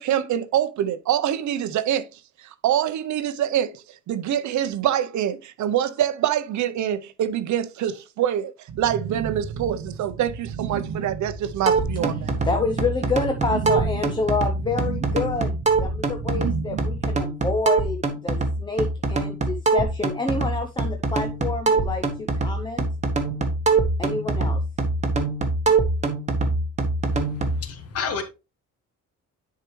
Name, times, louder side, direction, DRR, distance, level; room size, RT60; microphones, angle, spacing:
voice 1, 0.0-8.5 8.8-12.3, right 10 dB, 65° right, 0.7 m, -25 dB
sound 1, 8.7-17.2, right 7 dB, 85° right, 1.0 m, -33 dB
sound 2, 11.7-27.6, right 3 dB, 20° right, 1.1 m, -24 dB
voice 2, 12.4-22.8 24.0-24.6, left 3 dB, 15° left, 0.6 m, -28 dB
voice 3, 27.1-28.2, left 6 dB, 45° left, 1.4 m, -31 dB
10.0 x 4.8 x 3.1 m
cardioid pair, 180°, 32 cm